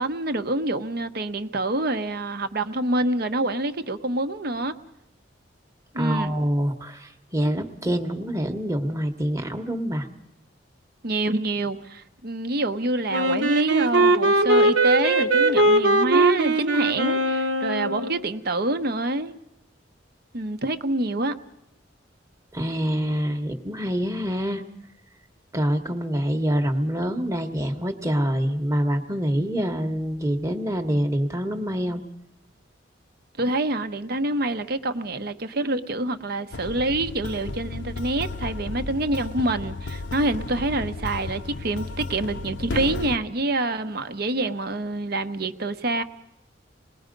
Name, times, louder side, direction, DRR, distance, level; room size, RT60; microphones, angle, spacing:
voice 1, 0.0-4.7 5.9-6.3 11.0-19.4 20.3-21.4 33.4-46.0, right 2 dB, 55° right, 9 dB, 1.0 m, -26 dB
voice 2, 6.0-10.1 22.5-24.6 25.5-32.0, equal, 15° right, 4 dB, 1.2 m, -26 dB
Wind instrument woodwind instrument, 13.1-18.2, right 2 dB, 85° right, 1.5 m, -20 dB
sound 1, 36.5-43.2, left 3 dB, 80° left, 0.7 m, -33 dB
27.0 x 20.0 x 5.3 m, 0.83 s
head